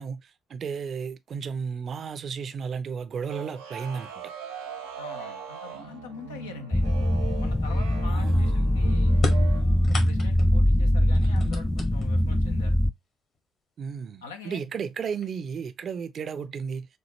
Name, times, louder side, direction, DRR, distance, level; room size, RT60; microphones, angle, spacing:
voice 1, 0.0-4.1 8.0-8.6 13.8-16.9, right 6 dB, 50° right, 0.5 m, -34 dB
sound 1, 3.3-9.6, right 6 dB, 85° right, 1.0 m, -40 dB
voice 2, 5.0-6.9 7.4-9.1 9.6-12.8 14.2-14.6, left 5 dB, 80° left, 0.6 m, -43 dB
sound 2, 6.7-12.9, left 1 dB, 15° left, 0.4 m, -22 dB
sound 3, 9.1-10.6 11.1-12.3 13.3-13.4 14.4-14.5 15.0-15.5, left 4 dB, 55° left, 1.7 m, -34 dB
6.5 x 2.4 x 3.1 m
figure-of-eight pair, 45°, 0 cm